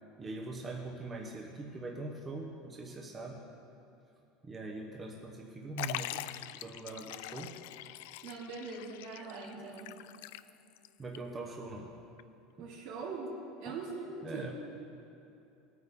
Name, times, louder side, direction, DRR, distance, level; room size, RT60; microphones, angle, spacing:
voice 1, 0.2-3.4 4.4-6.2 6.5-7.5 11.0-11.9 12.6-12.7 13.6-13.8 14.2-14.5, right 2 dB, 20° right, 0 dB, 1.0 m, -42 dB
Liquid, 5.8-10.9 11.1-11.2 12.2-12.3, left 15 dB, 80° left, 0.3 m, -43 dB
voice 2, 8.2-9.9 12.6-13.3 13.6-14.5, right 4 dB, 75° right, -5 dB, 3.1 m, -42 dB
17.5 x 9.6 x 3.7 m, 2.8 s
supercardioid pair, 150°, 0 cm